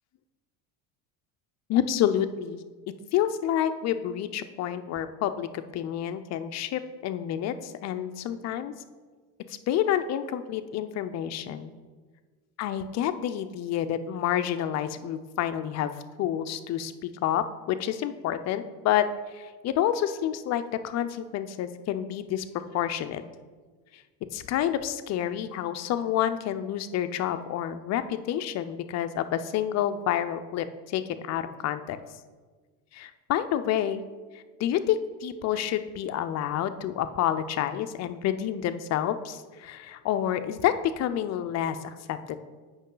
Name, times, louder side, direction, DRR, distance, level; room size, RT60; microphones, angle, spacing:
voice 1, 1.7-2.6 3.1-8.7 9.7-11.7 12.6-15.9 16.2-19.1 19.3-23.2 24.3-32.0 32.9-34.0 34.6-42.4, left 10 dB, 45° left, 10 dB, 0.5 m, -29 dB
8.0 x 5.7 x 3.8 m, 1.4 s
cardioid pair, 125°, 39 cm